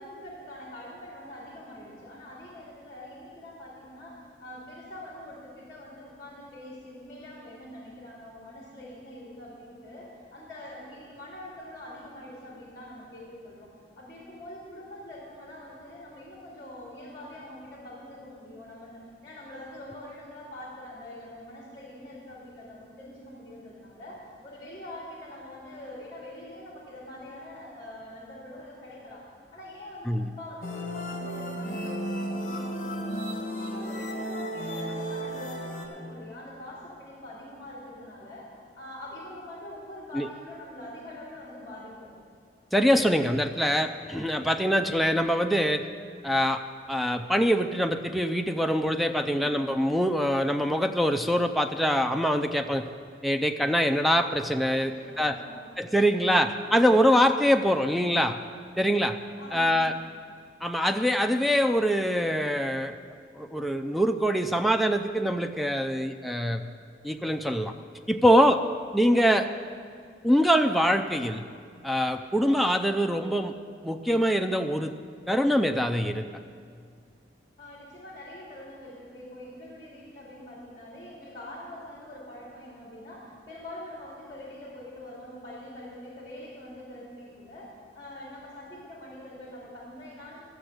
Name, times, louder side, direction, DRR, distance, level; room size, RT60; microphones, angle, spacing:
voice 1, 0.0-13.7 14.0-29.2 29.5-33.2 33.5-38.5 38.7-42.1 54.7-55.7 59.4-59.9 77.6-87.7 87.9-90.4, left 1 dB, 25° left, -4 dB, 2.5 m, -44 dB
sound 1, 30.6-35.9, equal, 45° left, 1.7 m, -33 dB
voice 2, 42.7-45.9 46.2-46.6 46.9-52.9 53.2-54.9 55.2-55.4 55.8-58.4 58.8-59.2 59.5-59.9 60.6-63.0 63.4-66.7 67.0-67.7 68.1-68.6 68.9-69.5 70.2-71.4 71.8-73.5 73.8-74.9 75.3-76.3, equal, ahead, 6 dB, 0.4 m, -24 dB
13.0 x 7.0 x 7.9 m, 2.2 s
head